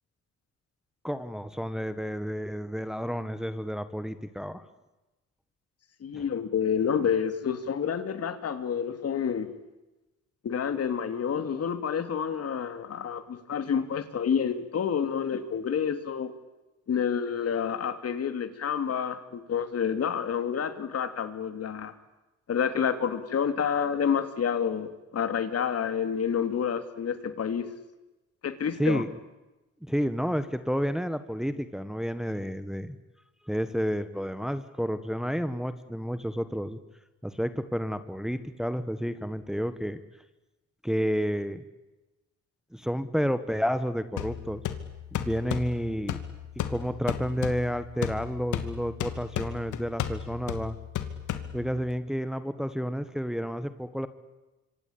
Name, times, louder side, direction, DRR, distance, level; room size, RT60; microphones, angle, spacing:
voice 1, 1.0-4.6 6.1-6.3 28.8-29.1 29.8-33.0 33.5-36.8 37.2-40.0 40.8-41.6 42.7-44.6 45.1-46.2 46.7-50.8 51.5-54.1, equal, ahead, 11 dB, 1.6 m, -30 dB
voice 2, 6.0-9.5 10.4-16.3 16.9-21.9 22.5-27.7 28.4-29.0, left 7 dB, 55° left, 10 dB, 2.9 m, -29 dB
sound 1, 44.2-51.9, left 10 dB, 80° left, 2.6 m, -35 dB
26.0 x 25.5 x 8.9 m, 1.0 s
cardioid pair, 90°, 30 cm